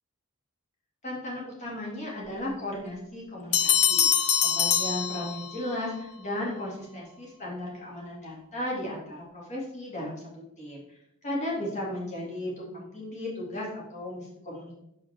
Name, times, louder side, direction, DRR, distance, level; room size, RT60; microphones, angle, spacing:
voice 1, 1.0-10.2 10.6-10.8 11.2-14.8, left 1 dB, 30° left, -4 dB, 2.1 m, -35 dB
sound 1, 3.5-5.8, left 9 dB, 90° left, 0.6 m, -24 dB
6.5 x 5.4 x 3.4 m, 0.82 s
head